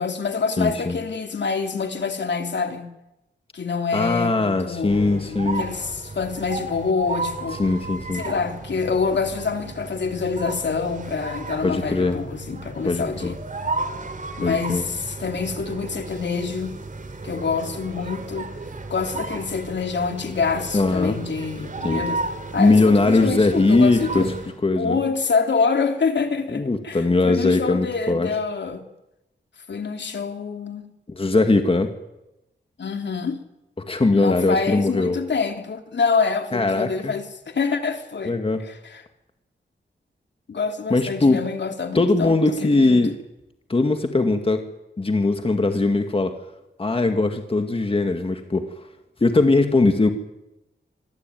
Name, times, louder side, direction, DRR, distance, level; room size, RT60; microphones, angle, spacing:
voice 1, 0.0-2.9 3.5-7.6 8.1-13.4 14.4-16.8 17.2-18.5 18.9-22.2 22.5-24.3 24.8-28.8 29.7-30.9 32.8-33.4 34.2-38.3 38.6-39.0 40.5-42.3 42.6-43.0, left 5 dB, 65° left, 3.1 m, -26 dB
voice 2, 0.6-1.0 3.9-5.6 7.6-8.2 11.6-12.2 12.8-13.3 14.4-14.8 20.7-21.2 21.8-22.0 22.6-24.3 24.6-25.0 26.5-28.3 31.1-31.9 33.9-35.2 36.5-37.1 38.3-38.6 40.9-41.4 41.9-43.2 43.7-44.7 45.0-46.3 46.8-48.9 49.2-50.1, left 3 dB, 30° left, 2.0 m, -20 dB
sound 1, 4.9-24.6, right 3 dB, 40° right, 3.2 m, -34 dB
26.5 x 22.5 x 9.3 m
wide cardioid pair, 165°, 20 cm